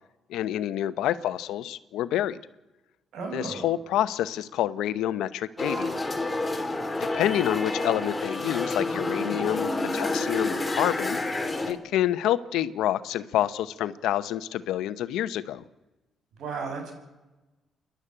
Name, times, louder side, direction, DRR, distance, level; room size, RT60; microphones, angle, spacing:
voice 1, 0.3-2.4 3.3-6.0 7.1-11.2 11.7-15.6, left 12 dB, 90° left, 14 dB, 0.9 m, -28 dB
voice 2, 3.1-3.7 16.4-16.9, right 4 dB, 75° right, 4 dB, 6.2 m, -34 dB
sound 1, 5.6-11.7, left 2 dB, 15° left, 2.9 m, -29 dB
28.5 x 11.5 x 8.9 m, 1.1 s
cardioid pair, 90°, 0 cm